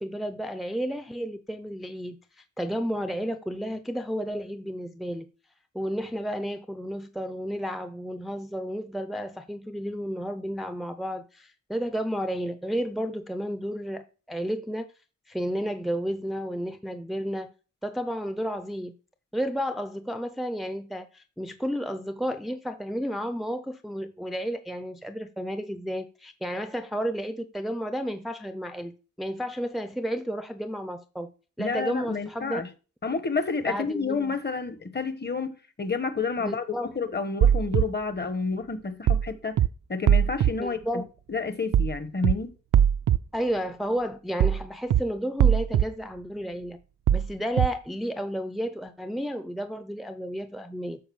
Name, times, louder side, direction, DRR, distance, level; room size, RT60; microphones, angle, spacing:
voice 1, 0.0-5.3 5.7-14.9 15.3-17.5 17.8-18.9 19.3-31.3 31.6-32.6 33.7-34.4 36.4-36.9 40.6-41.1 43.3-46.8 47.1-51.0, equal, ahead, 0.6 m, -32 dB
voice 2, 31.6-32.7 33.0-39.6 39.9-41.0 41.3-42.5, left 4 dB, 35° left, 1.3 m, -30 dB
sound 1, 37.4-37.8 39.1-39.3 39.6-39.7 40.1-40.5 41.7-41.9 42.2-42.3 42.7-43.2 44.4-44.6 44.9-45.0 45.4-45.8 47.1-47.3 47.6-47.7, right 9 dB, 80° right, 0.6 m, -20 dB
12.5 x 5.0 x 7.1 m
wide cardioid pair, 160°, 31 cm